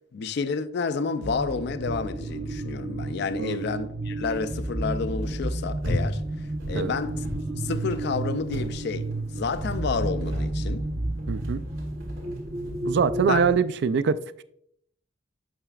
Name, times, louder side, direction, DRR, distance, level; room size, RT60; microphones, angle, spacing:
voice 1, 0.1-7.2 7.5-10.9 13.2-13.4, left 5 dB, 55° left, 0.4 m, -30 dB
sound 1, 1.2-13.5, right 2 dB, 30° right, 0.7 m, -31 dB
sound 2, 5.0-13.3, left 1 dB, 75° right, 2.4 m, -38 dB
voice 2, 11.3-11.6 12.9-14.4, right 6 dB, 55° right, 0.3 m, -24 dB
8.7 x 5.9 x 2.4 m
head